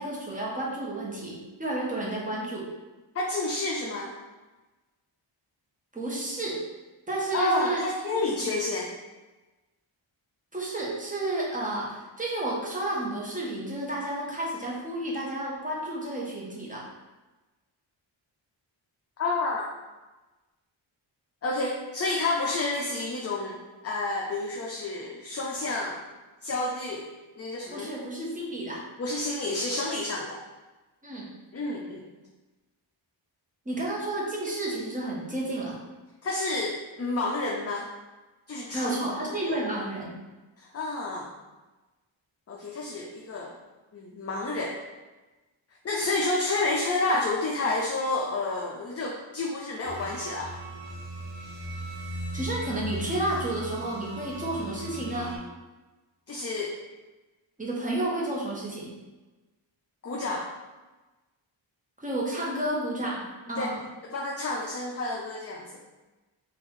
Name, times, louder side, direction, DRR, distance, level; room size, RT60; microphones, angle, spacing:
voice 1, 0.0-2.7 5.9-6.6 7.1-7.8 8.1-8.4 10.5-16.9 27.7-28.8 31.0-31.3 33.6-35.8 38.7-40.1 52.3-55.3 57.6-58.9 62.0-63.8, right 1 dB, 15° right, -4 dB, 1.1 m, -31 dB
voice 2, 3.1-4.1 7.3-8.9 19.2-19.7 21.4-26.0 26.4-27.1 27.4-27.9 29.0-30.4 31.5-32.0 36.2-37.9 38.5-39.6 40.6-41.3 42.5-43.5 43.9-44.8 45.8-50.5 56.3-56.7 60.0-60.5 63.6-63.7 64.1-65.8, left 2 dB, 30° left, -1 dB, 0.5 m, -30 dB
sound 1, 49.8-55.4, right 1 dB, 75° right, 1.5 m, -37 dB
4.0 x 2.6 x 4.7 m, 1.2 s
wide cardioid pair, 110°, 47 cm